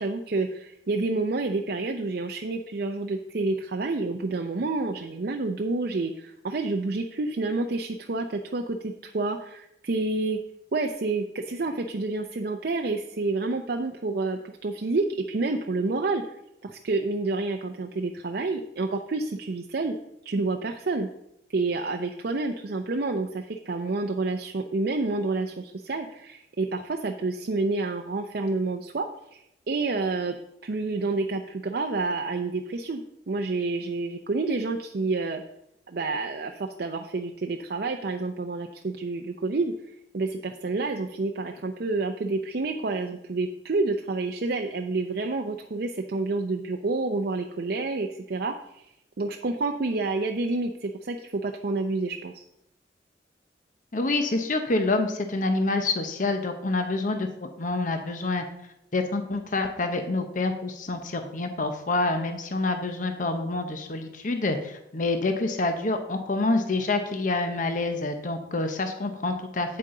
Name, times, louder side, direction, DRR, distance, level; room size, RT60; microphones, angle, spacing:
voice 1, 0.0-10.4 10.7-16.2 16.6-20.0 20.2-21.1 21.5-30.3 30.6-35.4 35.9-39.7 40.1-48.9 49.2-52.4, right 3 dB, 60° right, 4 dB, 0.5 m, -29 dB
voice 2, 53.9-58.4 58.9-69.8, left 2 dB, 50° left, 6 dB, 0.9 m, -27 dB
8.7 x 8.3 x 3.8 m, 0.81 s
head